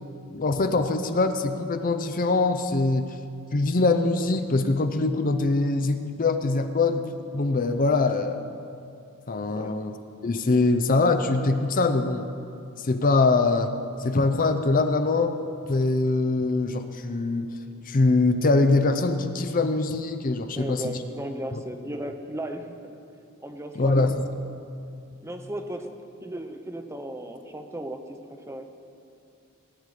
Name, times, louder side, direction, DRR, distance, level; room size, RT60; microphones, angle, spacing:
voice 1, 0.3-3.1 3.5-7.1 7.3-8.4 9.3-9.9 10.2-12.3 12.8-13.7 14.0-15.4 15.7-17.5 17.9-21.0 21.5-21.6 23.8-24.3, left 3 dB, 40° left, 8 dB, 0.6 m, -23 dB
voice 2, 9.5-9.8 20.6-23.0 23.4-24.1 25.2-28.0 28.3-28.7, right 1 dB, 10° right, 6 dB, 0.7 m, -35 dB
18.5 x 10.0 x 5.0 m, 2.6 s
head